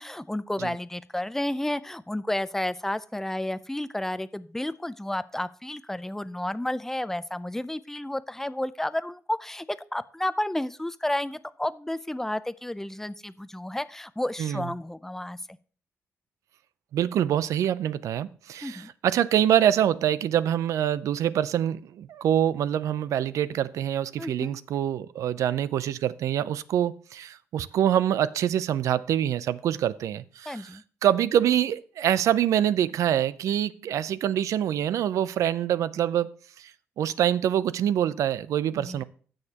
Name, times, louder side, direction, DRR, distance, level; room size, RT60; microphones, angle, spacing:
voice 1, 0.0-9.7 9.9-15.4 18.6-18.9 24.2-24.5 30.5-30.8 38.8-39.0, left 1 dB, 5° left, 0.5 m, -31 dB
voice 2, 16.9-36.7 37.0-39.0, right 10 dB, 85° right, 0.5 m, -25 dB
16.5 x 6.5 x 2.9 m
cardioid pair, 85°, 5 cm